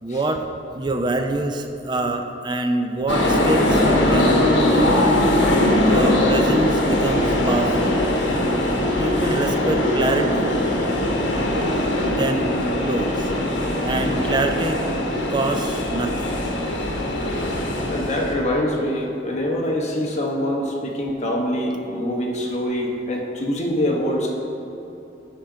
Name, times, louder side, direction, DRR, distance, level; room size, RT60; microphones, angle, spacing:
voice 1, 0.0-0.4 0.7-5.2 5.8-8.0 9.0-10.5 12.1-13.3 13.8-14.8 15.3-16.4, right 2 dB, 25° right, 5 dB, 0.4 m, -25 dB
sound 1, 3.1-18.3, left 1 dB, 80° left, 1.1 m, -21 dB
voice 2, 17.8-24.3, left 1 dB, 35° left, -1 dB, 1.0 m, -24 dB
10.5 x 3.8 x 4.6 m, 3.0 s
head